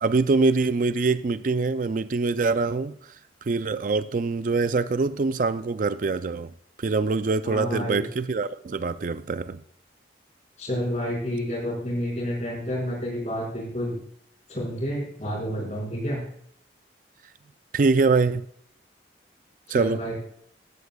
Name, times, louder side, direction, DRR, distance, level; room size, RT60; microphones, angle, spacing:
voice 1, 0.0-2.9 3.5-6.5 6.8-9.6 17.7-18.4 19.7-20.2, right 4 dB, 50° right, 0.4 m, -24 dB
voice 2, 7.4-8.1 10.6-14.0 14.5-16.2 19.7-20.2, equal, 40° left, 5.5 m, -29 dB
15.0 x 11.5 x 2.3 m
head